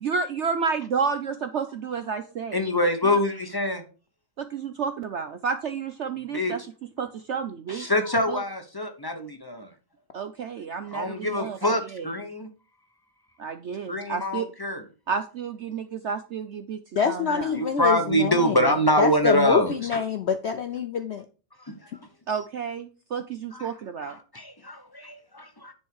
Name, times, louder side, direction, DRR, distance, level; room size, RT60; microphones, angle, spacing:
voice 1, 0.0-2.6 3.0-3.2 4.4-6.6 7.0-7.9 8.3-8.4 10.1-12.1 13.4-14.4 15.1-16.8 17.0-17.5 22.3-24.1, right 5 dB, 60° right, 9 dB, 0.7 m, -30 dB
voice 2, 2.5-3.8 6.3-6.5 7.7-9.7 10.9-12.5 13.9-14.8 17.5-19.7 21.7-21.8 23.5-23.7 24.0-25.7, equal, 15° left, 5 dB, 0.9 m, -25 dB
voice 3, 17.0-18.7 19.0-21.2, left 6 dB, 60° left, 7 dB, 0.7 m, -26 dB
10.0 x 4.5 x 4.7 m, 0.35 s
omnidirectional pair, 1.8 m